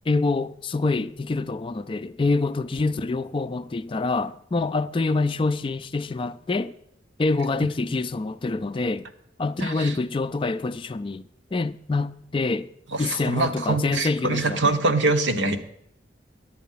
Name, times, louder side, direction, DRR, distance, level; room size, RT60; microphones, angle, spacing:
voice 1, 0.1-6.7 7.2-9.1 9.4-11.2 11.5-12.7 13.0-14.8, left 3 dB, 30° left, 0.4 m, -26 dB
voice 2, 9.6-9.9 12.9-15.6, right 2 dB, 80° right, 1.1 m, -24 dB
10.5 x 8.2 x 5.6 m
head